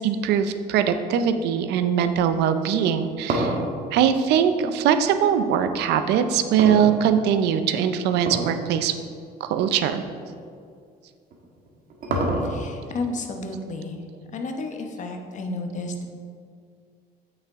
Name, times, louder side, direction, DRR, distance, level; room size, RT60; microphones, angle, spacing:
voice 1, 0.0-3.6 3.9-9.0 9.4-10.0, right 8 dB, 85° right, 9 dB, 0.6 m, -21 dB
sound 1, 2.7-5.2 6.6-7.5 8.2-8.6 9.0-9.1 9.8-9.9 11.3-12.8, right 2 dB, 55° right, 1.4 m, -27 dB
voice 2, 12.1-14.0 14.3-16.1, left 2 dB, 45° left, 4 dB, 1.0 m, -31 dB
8.4 x 6.5 x 3.6 m, 2.2 s
cardioid pair, 110°, 17 cm